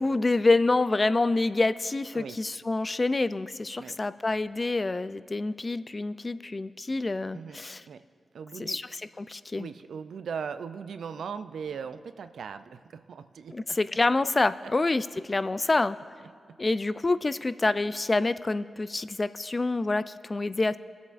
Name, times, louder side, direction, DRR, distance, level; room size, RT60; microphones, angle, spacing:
voice 1, 0.0-7.8 8.6-8.9 9.2-9.7 13.5-16.0 16.6-20.8, left 2 dB, 35° left, 14 dB, 0.3 m, -27 dB
voice 2, 7.3-8.1 8.3-8.8 9.5-13.8 14.6-14.7 15.6-15.7 16.2-16.6, right 6 dB, 80° right, 12 dB, 0.3 m, -39 dB
20.5 x 8.1 x 2.5 m, 2.2 s
cardioid pair, 45°, 0 cm